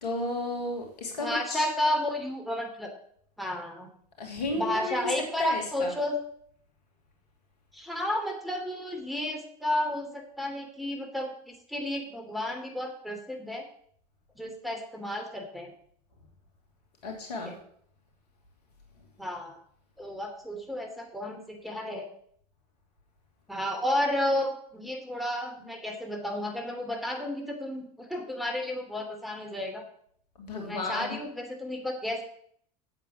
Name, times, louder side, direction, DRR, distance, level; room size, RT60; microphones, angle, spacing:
voice 1, 0.0-1.6 4.2-5.1 5.4-5.9 17.0-17.5 30.4-31.2, left 2 dB, 80° left, 2 dB, 2.8 m, -33 dB
voice 2, 1.2-2.9 3.4-3.9 4.5-6.2 7.7-13.6 14.3-15.7 17.4-17.5 19.2-19.6 20.0-22.1 23.5-29.8 30.5-32.2, left 1 dB, ahead, 1 dB, 3.0 m, -32 dB
8.8 x 7.3 x 7.1 m, 0.64 s
hypercardioid pair, 75°, 20 cm